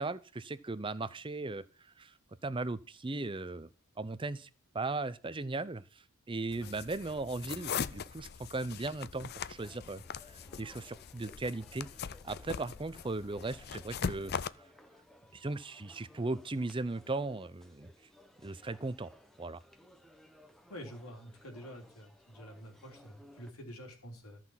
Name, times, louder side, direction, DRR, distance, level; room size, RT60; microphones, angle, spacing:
voice 1, 0.0-1.7 2.0-2.1 2.4-3.7 4.0-4.5 4.7-11.9 12.2-14.3 15.3-17.9 18.4-19.1 19.4-19.6, right 2 dB, 25° right, 15 dB, 0.6 m, -37 dB
sound 1, 6.5-14.5, left 6 dB, 45° left, 0.5 m, -41 dB
sound 2, 9.5-23.5, left 1 dB, ahead, 0.9 m, -60 dB
voice 2, 20.7-24.4, equal, 85° left, 1 dB, 3.7 m, -48 dB
13.5 x 6.0 x 7.3 m, 0.36 s
head